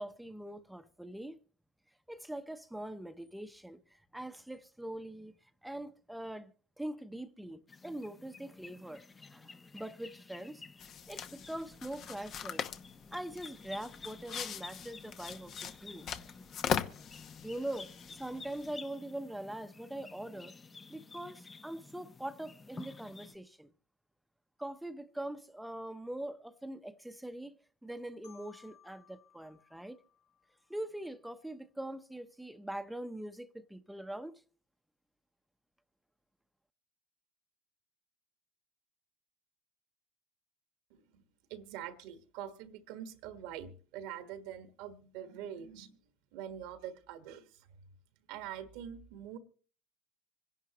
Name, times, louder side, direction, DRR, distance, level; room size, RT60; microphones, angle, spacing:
voice 1, 0.0-1.4 2.1-5.3 5.6-9.0 9.3-10.6 11.1-12.7 13.1-16.2 17.4-20.5 20.9-23.7 24.6-27.6 27.8-30.0 30.7-34.4, right 1 dB, 5° right, 0.8 m, -43 dB
sound 1, 7.7-23.4, left 4 dB, 25° left, 0.7 m, -52 dB
sound 2, 10.8-18.8, left 8 dB, 55° left, 1.0 m, -41 dB
Marimba xylophone, 28.2-31.1, left 9 dB, 85° left, 3.2 m, -62 dB
voice 2, 40.9-41.2 41.5-46.0 46.3-47.7 48.3-49.4, right 9 dB, 75° right, 1.5 m, -45 dB
26.0 x 11.0 x 3.0 m
supercardioid pair, 85°, 0 cm